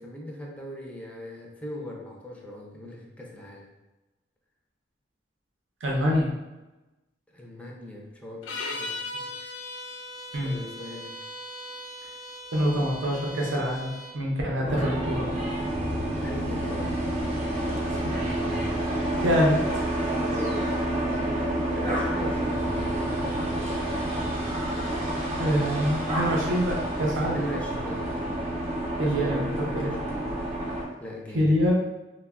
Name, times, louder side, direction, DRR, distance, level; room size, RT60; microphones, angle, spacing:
voice 1, 0.0-3.7 7.3-9.5 10.4-11.2 16.2-17.0 19.2-19.6 20.1-20.6 21.7-23.8 27.2-28.4 29.0-30.3 31.0-31.7, left 1 dB, 5° left, -1 dB, 0.4 m, -39 dB
voice 2, 5.8-6.3 10.3-10.6 12.5-15.3 18.0-18.2 19.2-19.6 25.4-27.4 29.0-29.4 29.7-29.9 31.3-31.7, equal, 90° right, -2 dB, 0.6 m, -25 dB
sound 1, 8.4-14.2, left 1 dB, 85° left, 0.4 m, -38 dB
sound 2, 14.6-30.9, right 1 dB, 35° right, 0.6 m, -29 dB
3.2 x 2.1 x 2.3 m, 1.1 s
head